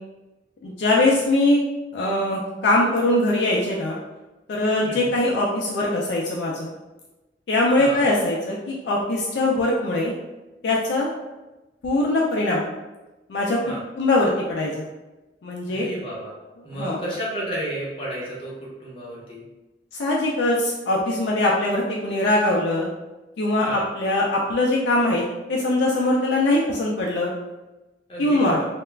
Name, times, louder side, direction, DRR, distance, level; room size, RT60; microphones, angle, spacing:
voice 1, 0.6-1.6 1.9-4.0 4.5-6.7 7.5-10.1 10.6-11.1 11.8-12.6 13.3-13.6 14.0-14.8 15.4-15.8 16.8-17.0 19.9-22.9 23.4-25.2 25.5-27.3 28.2-28.6, left 2 dB, 65° left, -3 dB, 0.4 m, -22 dB
voice 2, 4.8-5.2 7.8-8.1 13.6-13.8 15.7-16.4 16.6-19.4 23.6-23.9 28.1-28.7, equal, 30° left, -5 dB, 0.7 m, -32 dB
2.3 x 2.1 x 3.1 m, 1.1 s
head